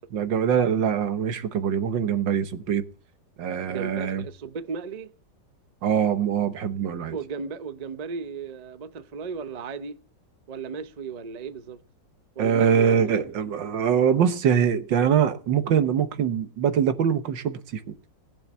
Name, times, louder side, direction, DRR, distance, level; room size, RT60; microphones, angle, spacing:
voice 1, 0.1-2.8 3.4-4.2 5.8-7.2 12.4-17.9, right 8 dB, 90° right, 1.9 m, -23 dB
voice 2, 3.7-5.1 7.1-10.0 10.5-11.8 12.4-13.2, right 5 dB, 40° right, 0.6 m, -35 dB
18.5 x 7.2 x 7.3 m
omnidirectional pair, 1.9 m